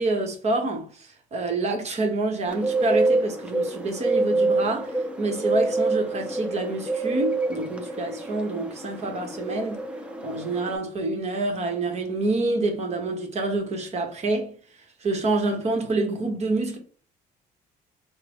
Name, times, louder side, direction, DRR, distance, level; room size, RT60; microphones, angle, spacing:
voice 1, 0.0-9.8 10.2-14.5 15.0-16.8, right 2 dB, 40° right, 1.1 m, -27 dB
Bird, 2.5-10.8, right 2 dB, 5° right, 0.6 m, -27 dB
3.7 x 2.1 x 3.5 m
cardioid pair, 110°, 17 cm